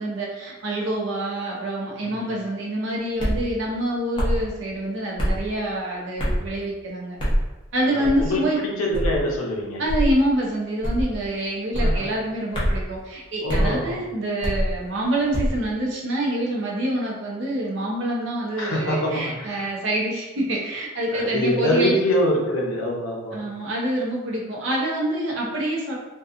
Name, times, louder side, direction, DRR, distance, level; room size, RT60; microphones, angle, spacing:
voice 1, 0.0-7.2 7.7-8.6 9.8-22.0 23.3-26.0, right 1 dB, 60° right, -3 dB, 0.6 m, -26 dB
sound 1, 3.2-3.4 4.2-4.4 5.2-5.4 6.2-6.5 7.2-7.4 8.0-8.3 8.9-9.2 9.9-10.1 10.8-11.1 11.7-12.0 12.5-12.8 13.5-13.7 14.4-14.7 15.3-15.6, equal, 25° left, 0.6 m, -23 dB
voice 2, 7.8-9.8 11.7-12.1 13.4-14.0 18.6-19.7 21.1-23.4, equal, 85° left, -1 dB, 0.6 m, -25 dB
2.7 x 2.3 x 2.4 m, 1.1 s
head